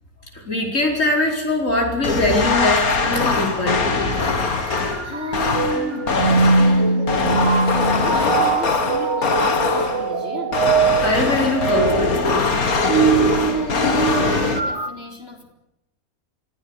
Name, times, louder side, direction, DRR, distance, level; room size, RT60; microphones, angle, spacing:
voice 1, 0.3-3.8 11.0-12.4, left 2 dB, 60° left, 2 dB, 5.3 m, -22 dB
sound 1, 2.0-10.1 10.5-14.6, left 4 dB, 85° left, 2.4 m, -22 dB
sound 2, 3.1-14.9, right 5 dB, 55° right, 1.7 m, -22 dB
voice 2, 5.0-7.1 7.6-10.8 13.4-15.5, left 2 dB, 45° left, 3 dB, 4.3 m, -33 dB
24.5 x 15.5 x 9.8 m, 0.85 s
omnidirectional pair, 1.5 m